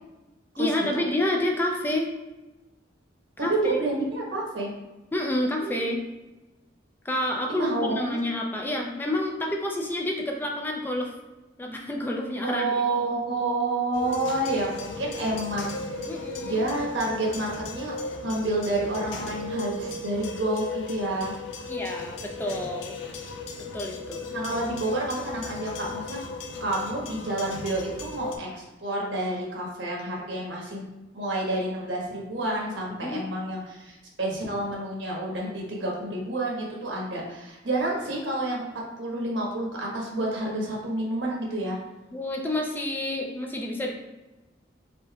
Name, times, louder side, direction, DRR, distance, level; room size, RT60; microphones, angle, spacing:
voice 1, 0.6-2.1 3.4-3.8 5.1-6.0 7.0-11.1 11.6-12.6 16.1-16.6 21.7-23.0 23.7-24.3 33.0-33.2 42.1-43.9, left 1 dB, 10° left, 1 dB, 0.4 m, -29 dB
voice 2, 3.6-4.7 5.6-5.8 7.5-8.2 12.4-16.1 16.4-17.9 18.2-21.3 24.3-26.2 26.6-30.9 31.1-38.7 39.0-41.8, right 2 dB, 75° right, -3 dB, 1.2 m, -29 dB
sound 1, 13.9-28.4, left 3 dB, 75° left, 0.5 m, -36 dB
4.3 x 3.8 x 2.3 m, 1.1 s
head